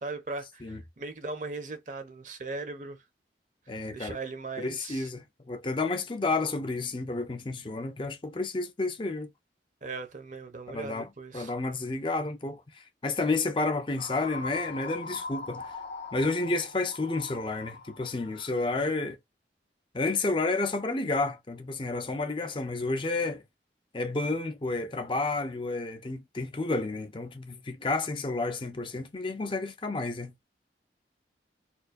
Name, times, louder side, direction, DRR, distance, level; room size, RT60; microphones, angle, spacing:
voice 1, 0.0-3.0 3.9-5.1 9.8-11.5, right 3 dB, 45° right, 0.7 m, -38 dB
voice 2, 3.7-4.2 4.6-9.3 10.7-11.1 11.3-15.7 16.1-19.2 19.9-23.4 23.9-30.3, left 3 dB, 30° left, 0.5 m, -31 dB
sound 1, 14.0-19.0, left 3 dB, 85° left, 1.5 m, -41 dB
4.3 x 2.2 x 2.5 m
head